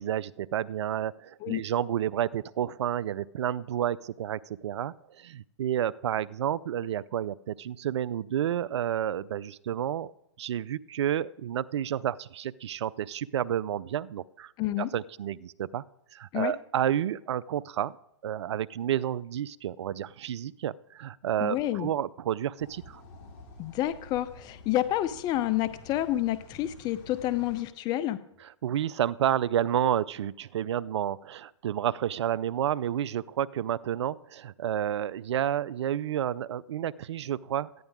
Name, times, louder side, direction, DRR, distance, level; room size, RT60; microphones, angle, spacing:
voice 1, 0.0-10.1 10.4-14.5 14.8-15.8 16.1-17.9 18.2-23.0 28.6-37.8, right 10 dB, 70° right, 18 dB, 0.4 m, -30 dB
voice 2, 14.6-14.9 16.3-16.5 21.4-21.9 23.6-28.2, left 14 dB, 30° left, 15 dB, 0.6 m, -29 dB
sound 1, 22.6-27.6, left 3 dB, 45° left, 2.6 m, -50 dB
14.0 x 10.5 x 3.6 m, 0.79 s
hypercardioid pair, 125°, 15 cm